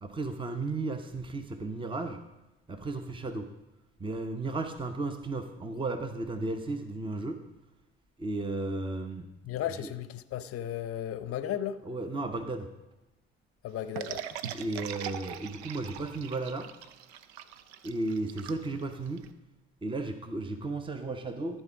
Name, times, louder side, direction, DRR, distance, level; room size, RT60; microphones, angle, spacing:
voice 1, 0.0-2.2 2.7-3.5 4.0-7.4 8.2-9.3 9.8-9.9 11.9-12.7 14.5-16.7 17.8-19.3 19.8-21.6, right 2 dB, 15° right, 0.9 m, -34 dB
voice 2, 9.4-11.8 13.6-14.3, left 10 dB, 45° left, 0.7 m, -35 dB
sound 1, 14.0-19.3, right 10 dB, 80° right, 0.6 m, -41 dB
13.0 x 4.4 x 5.8 m
hypercardioid pair, 55°, 32 cm